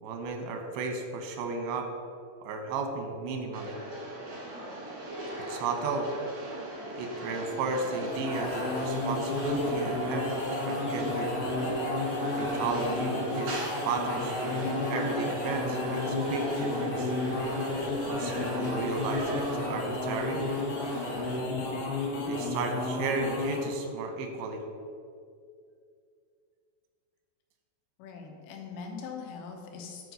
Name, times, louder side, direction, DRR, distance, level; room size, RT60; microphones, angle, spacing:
voice 1, 0.0-1.9 2.4-3.8 5.5-6.1 6.9-11.3 12.2-17.1 18.1-20.4 22.2-24.6, right 3 dB, 90° right, 4 dB, 3.2 m, -34 dB
sound 1, 3.5-21.4, right 1 dB, 60° right, 1.0 m, -38 dB
sound 2, 7.8-17.4, equal, 50° left, 0.8 m, -39 dB
sound 3, 7.9-23.8, left 2 dB, 65° left, 2.8 m, -32 dB
voice 2, 28.0-30.1, left 5 dB, 85° left, 2 dB, 3.2 m, -42 dB
10.5 x 4.6 x 5.3 m, 2.3 s
omnidirectional pair, 5.0 m